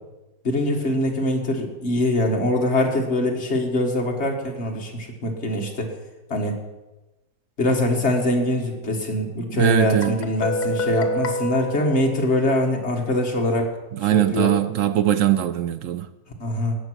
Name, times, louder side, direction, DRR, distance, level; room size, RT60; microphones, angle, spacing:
voice 1, 0.4-5.9 6.3-6.6 7.6-13.7 14.1-14.5 16.4-16.8, left 1 dB, 40° left, 2.0 m, -23 dB
voice 2, 9.5-10.2 13.9-16.1, right 12 dB, 70° right, 0.7 m, -21 dB
Guitar, 10.0-12.8, left 1 dB, 70° left, 1.8 m, -28 dB
17.5 x 6.1 x 6.3 m
omnidirectional pair, 1.8 m